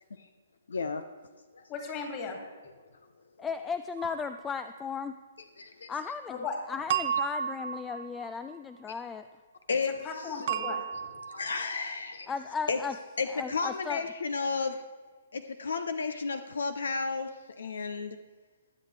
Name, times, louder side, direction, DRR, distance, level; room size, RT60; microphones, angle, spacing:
voice 1, 0.7-1.0 1.5-1.7 5.6-5.9 9.7-10.3 11.3-12.3 12.7-12.8 13.2-14.8 15.3-18.2, left 4 dB, 70° left, 10 dB, 0.6 m, -32 dB
voice 2, 1.7-2.4 6.3-6.6 9.8-11.0, left 5 dB, 30° left, 2 dB, 2.5 m, -37 dB
voice 3, 3.4-5.1 5.9-9.3 12.3-13.0 13.3-14.1, left 5 dB, 15° left, 11 dB, 0.3 m, -36 dB
sound 1, 4.0-4.4 6.9-8.5 10.5-11.6, right 8 dB, 50° right, 0.8 m, -33 dB
20.5 x 7.9 x 3.3 m, 1.5 s
figure-of-eight pair, 130°, 0 cm